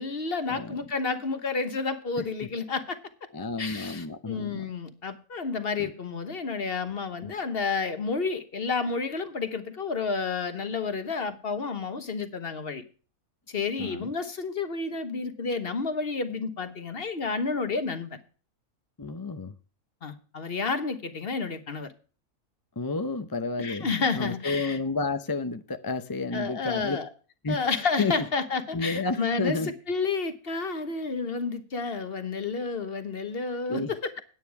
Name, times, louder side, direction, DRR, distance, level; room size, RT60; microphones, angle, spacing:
voice 1, 0.0-3.0 3.6-12.8 13.5-18.2 20.0-21.9 23.6-24.8 26.3-27.1 27.5-34.1, left 4 dB, 45° left, 1.3 m, -30 dB
voice 2, 3.3-4.6 5.8-5.9 13.8-14.1 19.0-19.5 22.8-23.9 24.1-27.0 27.4-27.7 28.0-28.2 28.7-29.7 33.7-33.9, left 3 dB, 25° left, 0.5 m, -31 dB
9.5 x 9.2 x 4.7 m
omnidirectional pair, 1.5 m